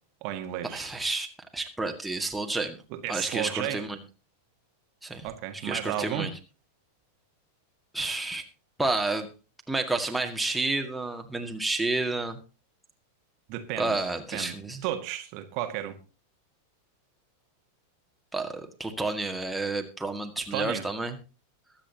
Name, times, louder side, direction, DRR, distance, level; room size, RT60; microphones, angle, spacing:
voice 1, 0.2-0.9 2.9-3.8 5.2-6.3 13.5-14.0 14.3-16.0 20.5-20.8, right 12 dB, 45° right, 1.6 m, -33 dB
voice 2, 0.7-1.3 1.5-2.8 3.1-4.0 5.0-5.2 5.6-6.3 7.9-8.4 8.8-9.3 9.7-12.4 13.8-14.8 18.3-21.2, right 2 dB, 5° right, 2.0 m, -30 dB
22.0 x 8.7 x 2.9 m
figure-of-eight pair, 90°, 0 cm